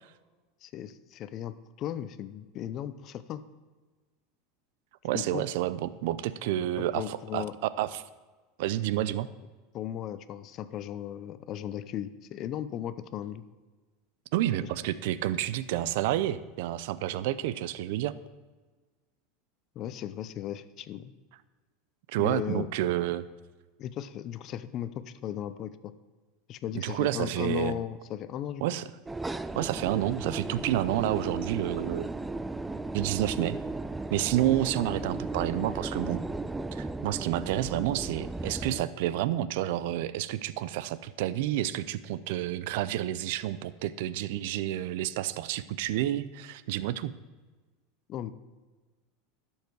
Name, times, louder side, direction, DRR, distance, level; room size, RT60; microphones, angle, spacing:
voice 1, 0.6-3.4 5.1-5.4 6.8-7.5 9.7-13.4 19.8-21.1 22.2-22.7 23.8-25.9 26.5-28.6 48.1-48.3, left 11 dB, 45° left, 13 dB, 0.6 m, -36 dB
voice 2, 5.0-7.4 7.8-8.0 8.6-9.3 14.3-18.1 22.1-23.2 26.7-27.7 28.6-28.8 29.5-32.1 32.9-33.6 34.1-36.2 36.7-47.1, right 13 dB, 70° right, 16 dB, 0.5 m, -29 dB
sound 1, 29.1-38.9, right 2 dB, 10° right, 0.4 m, -36 dB
12.0 x 7.3 x 4.7 m, 1.3 s
supercardioid pair, 125°, 0 cm